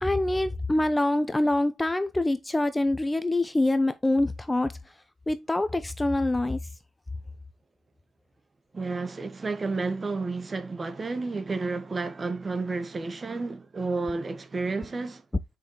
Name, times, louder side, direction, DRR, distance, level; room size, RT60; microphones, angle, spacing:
voice 1, 0.0-4.7 5.3-6.6, left 1 dB, 15° left, 0.7 m, -25 dB
voice 2, 8.7-15.2, right 3 dB, 30° right, 1.3 m, -31 dB
7.0 x 5.5 x 3.1 m
cardioid pair, 90°, 0 cm